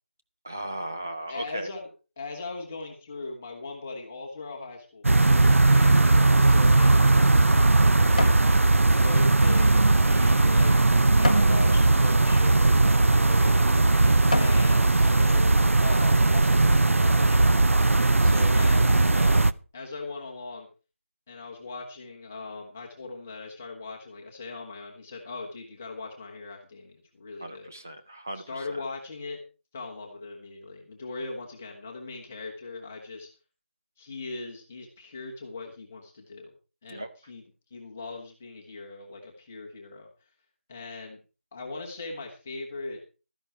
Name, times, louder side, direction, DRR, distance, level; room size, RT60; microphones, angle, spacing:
voice 1, 0.4-1.7 8.1-8.6 14.0-14.5 27.4-28.6 36.9-37.1, right 1 dB, 15° right, 6 dB, 0.5 m, -38 dB
voice 2, 1.3-1.9 2.2-7.8 9.0-13.8 14.3-15.6 15.8-17.7 18.2-20.7 21.3-27.7 28.3-29.4 29.7-33.3 34.0-36.5 36.8-37.4 37.7-40.3 40.7-41.2 41.5-43.0, left 3 dB, 10° left, -1 dB, 1.1 m, -39 dB
sound 1, 5.0-19.5, right 2 dB, 75° right, 0.6 m, -19 dB
sound 2, 8.1-8.5 9.0-11.6 12.2-12.4 13.1-13.3 13.8-14.7 15.1-15.2, left 2 dB, 30° left, 1.0 m, -34 dB
13.0 x 10.5 x 4.5 m, 0.34 s
figure-of-eight pair, 180°, 7 cm